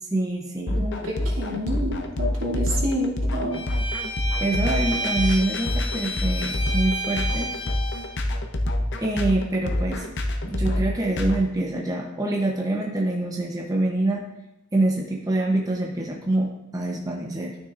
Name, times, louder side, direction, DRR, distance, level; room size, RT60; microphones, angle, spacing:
voice 1, 0.1-0.9 4.4-7.5 9.0-10.1 10.5-14.2 14.7-17.6, right 2 dB, 20° right, -1 dB, 0.8 m, -25 dB
sound 1, 0.7-11.4, left 1 dB, 60° left, 0.7 m, -26 dB
voice 2, 0.7-3.6, equal, 80° right, -5 dB, 2.8 m, -28 dB
Bowed string instrument, 3.5-8.2, right 1 dB, 25° left, 0.9 m, -31 dB
12.5 x 6.0 x 2.5 m, 0.94 s
head